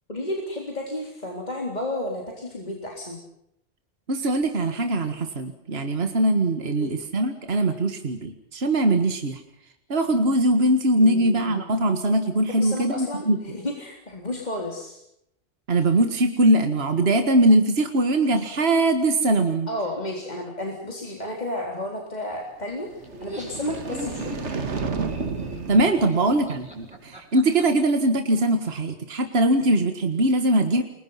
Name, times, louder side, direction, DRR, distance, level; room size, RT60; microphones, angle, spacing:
voice 1, 0.1-3.2 6.6-6.9 11.0-11.6 12.5-15.0 19.7-24.3, left 1 dB, 40° left, 0 dB, 4.0 m, -32 dB
voice 2, 4.1-9.4 9.9-13.4 15.7-19.7 25.7-30.8, right 1 dB, 60° right, 7 dB, 1.9 m, -21 dB
sound 1, 22.9-27.1, right 5 dB, 90° right, 1.9 m, -33 dB
Laughter, 23.0-27.6, right 1 dB, 5° right, 7.7 m, -37 dB
29.0 x 22.5 x 5.8 m, 0.77 s
omnidirectional pair, 1.1 m